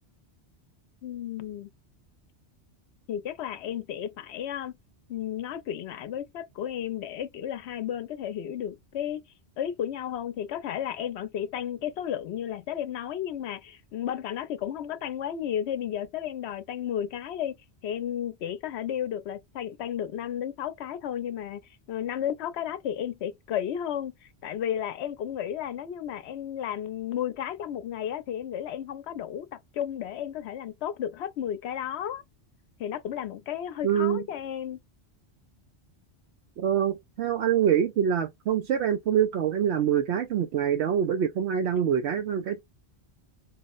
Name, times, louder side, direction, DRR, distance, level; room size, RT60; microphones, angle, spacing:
voice 1, 1.0-1.7 3.1-4.7 5.1-9.2 9.6-17.5 17.8-21.6 21.9-24.1 24.4-32.2 32.8-34.8, left 10 dB, 80° left, 0.8 m, -33 dB
voice 2, 33.8-34.2 36.6-42.6, right 9 dB, 85° right, 0.9 m, -25 dB
4.5 x 2.0 x 2.3 m
omnidirectional pair, 1.1 m